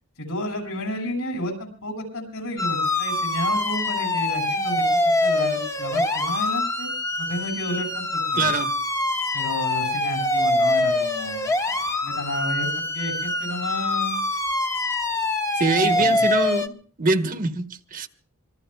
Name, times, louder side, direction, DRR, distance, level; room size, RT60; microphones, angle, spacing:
voice 1, 0.2-6.9 7.2-8.5 9.3-11.5 12.0-14.2 15.7-16.2, left 1 dB, 75° left, 7.4 m, -31 dB
sound 1, 2.6-16.7, left 2 dB, 15° left, 1.0 m, -24 dB
voice 2, 8.4-8.7 15.6-16.7 17.0-18.1, right 3 dB, 40° right, 1.1 m, -24 dB
26.0 x 21.0 x 2.3 m
head